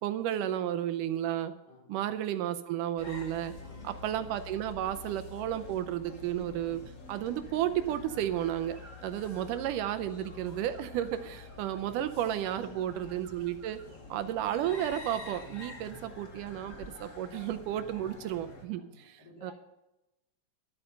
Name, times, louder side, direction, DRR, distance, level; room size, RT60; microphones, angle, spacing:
voice 1, 0.0-1.5 1.9-3.5 3.8-6.8 7.1-13.8 14.1-18.8 19.4-19.5, right 11 dB, 85° right, 11 dB, 2.2 m, -32 dB
voice 2, 1.7-2.1 3.6-4.1 12.6-13.0 13.8-14.3 18.7-19.5, left 1 dB, 45° left, -5 dB, 6.3 m, -55 dB
sound 1, 3.0-18.6, left 3 dB, 85° left, 0.6 m, -47 dB
sound 2, 8.7-14.1, right 3 dB, 30° right, 2.8 m, -58 dB
12.5 x 8.7 x 6.5 m, 0.93 s
omnidirectional pair, 3.8 m